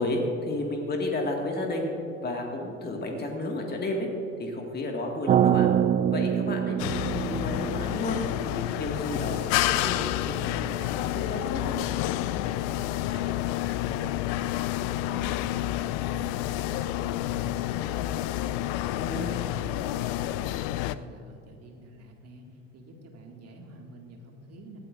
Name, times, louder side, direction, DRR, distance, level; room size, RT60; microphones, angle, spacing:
voice 1, 0.0-1.9 2.2-4.1 4.4-5.7 6.1-6.8 7.1-8.2 8.5-11.8 19.0-19.3, left 2 dB, 25° left, 1 dB, 2.0 m, -32 dB
sound 1, 5.3-9.4, right 9 dB, 20° right, 0.4 m, -26 dB
sound 2, 6.8-21.0, left 14 dB, 50° left, 0.5 m, -29 dB
voice 2, 12.3-18.5 18.9-22.4 22.7-24.8, right 1 dB, 40° right, 1 dB, 2.2 m, -47 dB
20.0 x 15.5 x 2.6 m, 2.8 s
figure-of-eight pair, 65°, 39 cm